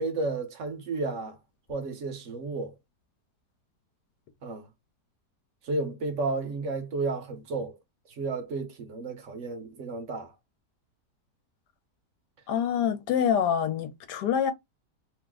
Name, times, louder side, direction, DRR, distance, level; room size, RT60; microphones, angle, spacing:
voice 1, 0.0-1.4 1.7-2.7 4.4-4.7 5.6-7.7 8.1-10.3, right 3 dB, 60° right, 1.0 m, -32 dB
voice 2, 12.5-14.5, left 8 dB, 90° left, 1.3 m, -26 dB
3.0 x 2.0 x 3.4 m
omnidirectional pair, 1.8 m